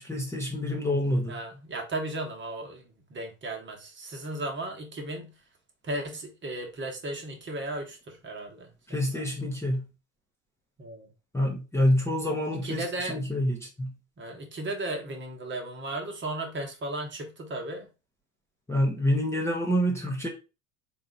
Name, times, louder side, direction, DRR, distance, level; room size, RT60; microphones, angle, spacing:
voice 1, 0.0-1.4 8.9-9.9 11.3-12.8 13.1-13.9 18.7-20.3, equal, 5° left, 0.9 m, -27 dB
voice 2, 1.3-5.3 5.8-9.3 10.8-11.1 12.5-13.2 14.2-17.9, right 1 dB, 25° right, 1.2 m, -35 dB
3.9 x 2.5 x 3.9 m
hypercardioid pair, 75°, 42 cm